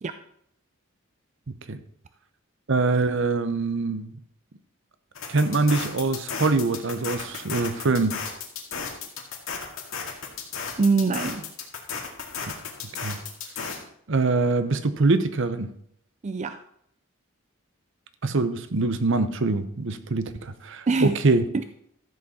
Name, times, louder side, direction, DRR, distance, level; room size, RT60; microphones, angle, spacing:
voice 1, 2.7-4.1 5.3-8.2 13.0-13.2 14.1-15.7 18.2-21.4, right 3 dB, 60° right, 11 dB, 0.8 m, -24 dB
sound 1, 5.2-13.8, left 6 dB, 75° left, 2.2 m, -34 dB
voice 2, 10.8-11.5 16.2-16.6 20.9-21.2 21.5-21.6, right 4 dB, 35° right, 10 dB, 0.4 m, -24 dB
13.5 x 7.7 x 4.2 m, 0.70 s
head